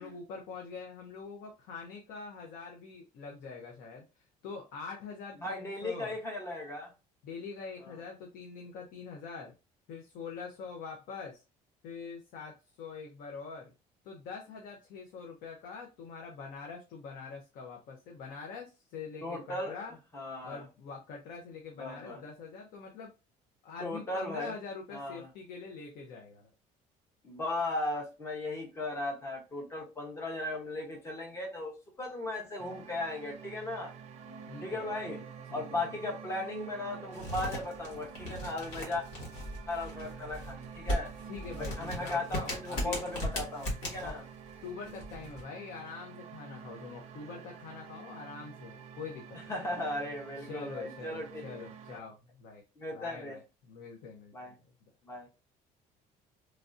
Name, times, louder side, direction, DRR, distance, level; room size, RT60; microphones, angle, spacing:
voice 1, 0.0-4.0 4.4-6.2 7.2-9.5 9.9-11.4 11.8-13.7 14.0-19.9 20.4-23.1 23.6-26.5 34.5-35.2 35.5-36.0 41.3-43.0 44.0-44.2 44.6-49.7 50.4-52.6 52.9-54.5, left 5 dB, 70° left, 0.7 m, -44 dB
voice 2, 5.4-6.9 7.8-8.0 19.2-19.7 20.1-20.6 21.8-22.2 23.8-24.5 24.9-25.3 27.2-33.9 34.6-35.2 35.5-39.0 39.7-41.1 41.6-44.2 49.5-52.0 52.8-53.4 54.3-54.5 55.0-55.3, left 2 dB, 20° left, 0.8 m, -37 dB
sound 1, 32.6-52.0, right 7 dB, 50° right, 0.5 m, -48 dB
sound 2, 37.1-45.4, equal, 55° left, 1.4 m, -37 dB
3.2 x 2.5 x 2.5 m
cardioid pair, 170°, 15 cm